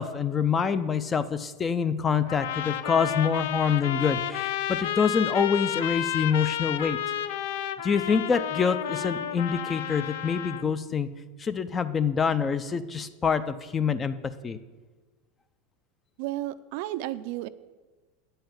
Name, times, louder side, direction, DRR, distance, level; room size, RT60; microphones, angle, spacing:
voice 1, 0.0-7.0 7.8-11.1 11.4-14.1 14.4-14.6, left 6 dB, 20° left, 14 dB, 0.5 m, -26 dB
sound 1, 2.3-10.7, left 11 dB, 75° left, 0.5 m, -31 dB
voice 2, 16.2-17.5, right 15 dB, 60° right, 14 dB, 0.4 m, -32 dB
8.8 x 5.6 x 7.3 m, 1.3 s
supercardioid pair, 135°, 0 cm